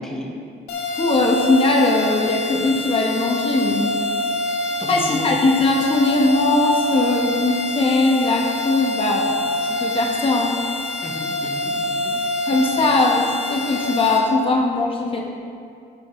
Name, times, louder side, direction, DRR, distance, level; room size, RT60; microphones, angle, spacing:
voice 1, 0.0-0.3 4.8-5.3 11.0-12.2, left 1 dB, 5° left, -1 dB, 1.3 m, -33 dB
sound 1, 0.7-14.2, left 1 dB, 70° left, 2.3 m, -26 dB
voice 2, 0.9-4.0 4.9-10.6 12.5-15.2, left 2 dB, 30° left, 0 dB, 1.2 m, -20 dB
13.0 x 8.7 x 3.2 m, 2.5 s
cardioid pair, 110°, 17 cm